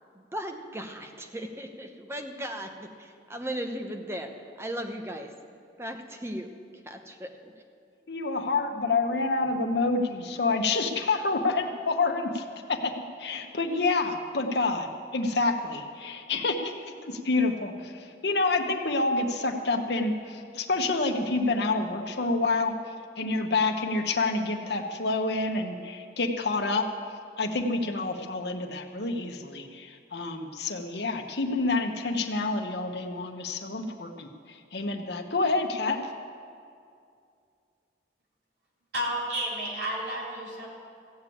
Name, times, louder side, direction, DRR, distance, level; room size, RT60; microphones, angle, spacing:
voice 1, 0.1-5.3 5.8-6.5 6.8-7.5, equal, 15° right, 4 dB, 0.9 m, -37 dB
voice 2, 8.1-12.9 13.2-22.7 23.2-26.9 27.4-36.0, left 3 dB, 65° left, 4 dB, 1.0 m, -28 dB
voice 3, 38.9-40.7, equal, 65° right, -5 dB, 3.6 m, -31 dB
15.5 x 7.1 x 8.5 m, 2.4 s
head